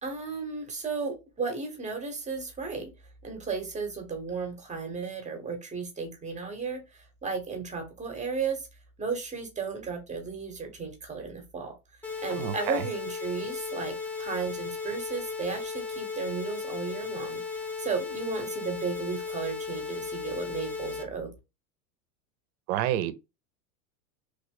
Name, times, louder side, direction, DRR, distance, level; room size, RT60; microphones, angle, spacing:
voice 1, 0.0-2.9 3.2-8.6 9.0-11.7 12.2-21.3, right 5 dB, 15° right, 1.0 m, -34 dB
sound 1, 12.0-21.0, left 5 dB, 5° left, 0.5 m, -36 dB
voice 2, 12.3-12.8 22.7-23.1, right 12 dB, 50° right, 0.6 m, -29 dB
3.2 x 2.4 x 3.6 m
hypercardioid pair, 110°, 45 cm